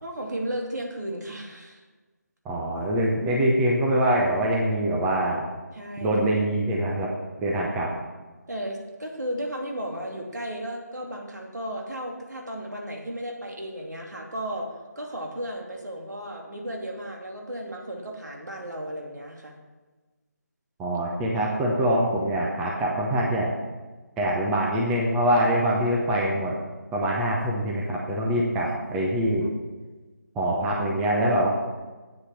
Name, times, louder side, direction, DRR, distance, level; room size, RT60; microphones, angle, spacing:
voice 1, 0.0-1.8 5.7-6.1 8.5-19.6 28.6-28.8, equal, 75° right, 1 dB, 2.6 m, -34 dB
voice 2, 2.4-5.4 6.0-7.1 7.4-7.9 20.8-23.5 24.2-26.5 26.9-29.5 30.4-31.5, right 1 dB, 5° right, -2 dB, 0.6 m, -24 dB
9.8 x 8.2 x 5.8 m, 1.3 s
figure-of-eight pair, 165°, 10 cm